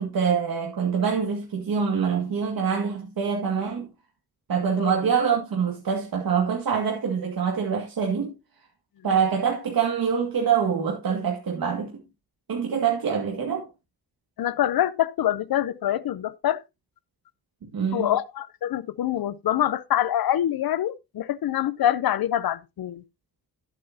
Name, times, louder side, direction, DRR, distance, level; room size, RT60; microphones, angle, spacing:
voice 1, 0.0-3.9 4.5-8.3 9.0-12.0 12.5-13.7 17.6-18.1, right 6 dB, 75° right, 2.0 m, -25 dB
voice 2, 14.4-16.6 17.9-23.0, left 11 dB, 80° left, 0.7 m, -25 dB
12.0 x 8.2 x 2.8 m
wide cardioid pair, 145°, 36 cm